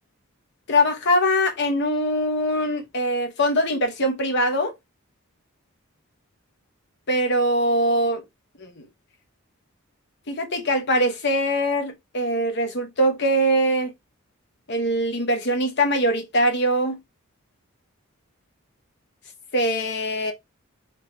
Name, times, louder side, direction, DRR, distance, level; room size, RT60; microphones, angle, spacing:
voice 1, 0.7-4.7 7.1-8.2 8.6-8.9 10.3-13.9 14.7-17.0 19.5-20.3, equal, 50° left, 0.9 m, -22 dB
3.4 x 3.0 x 3.2 m
head